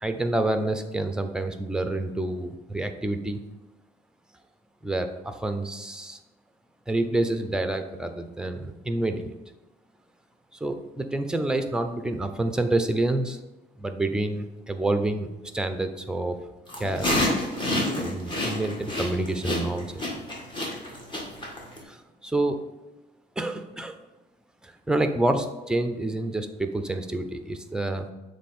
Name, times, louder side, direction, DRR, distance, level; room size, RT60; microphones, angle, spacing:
voice 1, 0.0-3.4 4.8-6.2 6.9-9.4 10.6-13.4 13.8-15.3 15.5-16.4 16.8-17.1 17.9-20.0 21.9-22.0 22.2-22.6 23.4-24.0 24.6-28.1, right 2 dB, 5° right, 7 dB, 0.5 m, -28 dB
sound 1, 16.7-21.8, left 1 dB, 30° left, 1.8 m, -28 dB
7.3 x 3.3 x 4.3 m, 1.1 s
cardioid pair, 110°, 17 cm